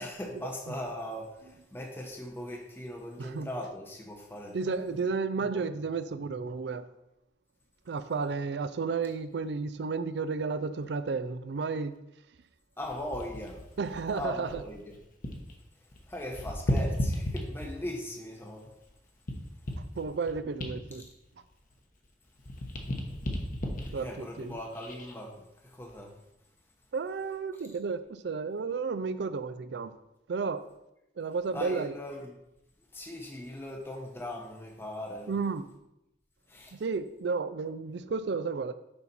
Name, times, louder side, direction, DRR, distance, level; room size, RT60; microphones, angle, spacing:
voice 1, 0.0-4.6 4.9-5.0 5.7-5.8 12.8-13.6 14.1-15.0 16.1-18.7 21.0-21.1 23.9-26.1 31.5-32.3 32.9-35.3 36.5-36.8, left 1 dB, 10° left, 0.8 m, -39 dB
voice 2, 4.5-6.9 7.9-11.9 13.8-14.6 20.0-21.0 23.9-24.6 26.9-29.9 30.3-30.7 31.2-31.9 35.3-35.7 36.8-38.7, right 4 dB, 65° right, 0.4 m, -32 dB
sound 1, 12.8-15.6 15.8-18.0 18.5-22.1 22.4-25.2 25.7-25.9, left 1 dB, 45° left, 1.0 m, -35 dB
6.7 x 5.7 x 4.2 m
head